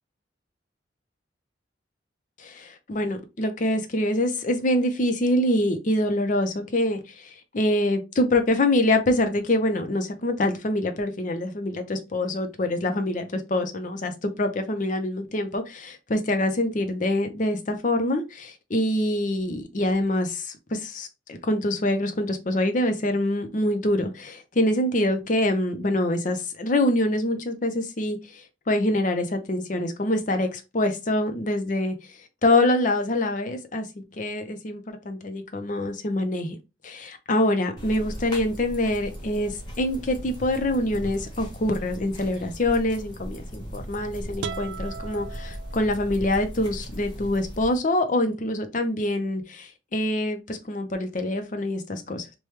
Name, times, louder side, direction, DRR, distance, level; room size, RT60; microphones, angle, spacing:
voice 1, 2.4-31.9 32.4-36.6 36.8-52.3, left 1 dB, 40° left, 0.5 m, -25 dB
sound 1, 37.8-47.8, equal, 25° left, 0.9 m, -38 dB
sound 2, 44.4-46.3, right 6 dB, 70° right, 0.3 m, -37 dB
3.2 x 2.2 x 3.1 m
head